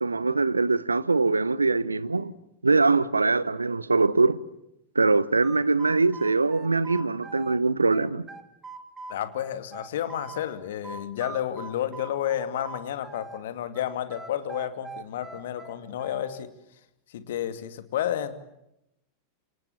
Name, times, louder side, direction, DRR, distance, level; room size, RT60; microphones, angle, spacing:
voice 1, 0.0-2.3 2.6-4.4 4.9-8.2, right 3 dB, 80° right, 1.0 m, -23 dB
sound 1, 5.1-7.6 7.9-10.4 10.8-13.4 13.7-16.4, right 4 dB, 15° right, 2.8 m, -42 dB
voice 2, 9.1-16.5 17.1-18.4, left 10 dB, 60° left, 2.5 m, -31 dB
29.5 x 27.0 x 7.4 m
figure-of-eight pair, 90°, 0 cm